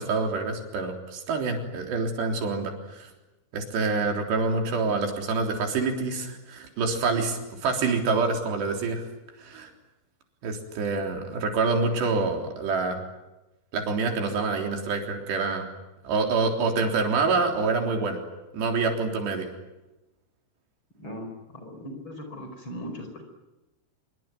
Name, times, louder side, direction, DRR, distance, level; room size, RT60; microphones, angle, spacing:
voice 1, 0.0-3.1 3.5-9.1 9.4-9.7 10.4-13.0 13.7-15.7 16.0-18.2 18.5-19.5, right 4 dB, 85° right, 3 dB, 5.8 m, -26 dB
voice 2, 21.5-23.2, equal, 30° left, 5 dB, 5.1 m, -38 dB
26.0 x 23.5 x 9.4 m, 1.0 s
omnidirectional pair, 4.8 m